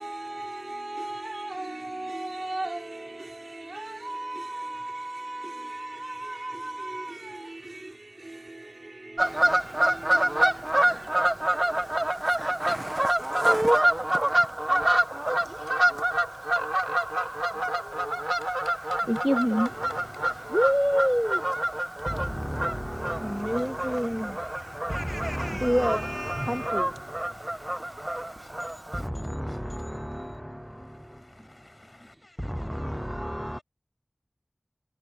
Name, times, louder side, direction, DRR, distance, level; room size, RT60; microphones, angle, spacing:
voice 1, 0.0-16.4 21.9-23.3 27.9-29.0 29.4-29.5, right 2 dB, 55° right, 5.8 m, -40 dB
Fowl / Bird vocalization bird call bird song, 9.2-29.1, right 1 dB, 30° right, 1.3 m, -27 dB
voice 2, 17.5-25.9 26.4-33.6, left 2 dB, 50° left, 7.8 m, -53 dB
voice 3, 19.1-19.7 20.5-21.5 22.0-28.3 28.9-31.5 32.4-33.6, equal, ahead, 0.4 m, -29 dB
wide cardioid pair, 45°, 0 cm